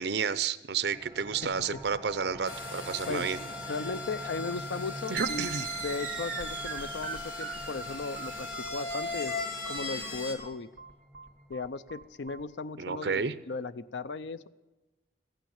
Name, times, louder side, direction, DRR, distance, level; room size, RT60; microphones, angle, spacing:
voice 1, 0.0-3.4 5.1-5.7 12.8-13.3, right 6 dB, 70° right, 15 dB, 0.6 m, -31 dB
sound 1, 0.9-12.3, right 1 dB, 15° right, 0.8 m, -48 dB
sound 2, 2.5-10.4, left 3 dB, 60° left, 2.6 m, -38 dB
voice 2, 3.1-5.5 5.8-10.7 11.5-14.5, left 4 dB, 80° left, 15 dB, 0.6 m, -37 dB
sound 3, 5.2-12.4, right 6 dB, 50° right, 2.3 m, -41 dB
15.0 x 9.2 x 7.1 m, 1.2 s
head